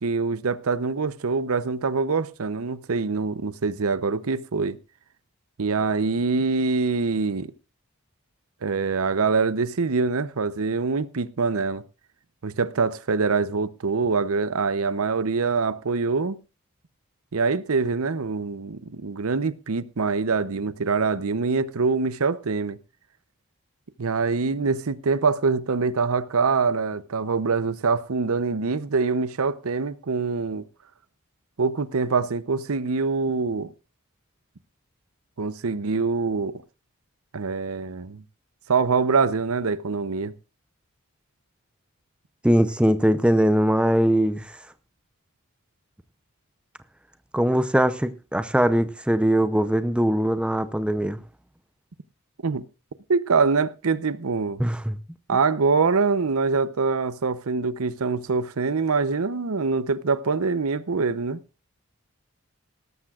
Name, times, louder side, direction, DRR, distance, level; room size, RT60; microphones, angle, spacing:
voice 1, 0.0-4.8 5.6-7.5 8.6-11.8 12.4-16.4 17.3-22.8 24.0-30.6 31.6-33.7 35.4-36.6 37.3-38.2 38.7-40.3 52.4-52.6 53.1-54.6 55.3-61.4, right 4 dB, 75° right, 0.7 m, -24 dB
voice 2, 42.4-44.6 47.3-51.2 54.6-55.0, equal, 5° right, 0.6 m, -21 dB
18.0 x 13.5 x 2.4 m
head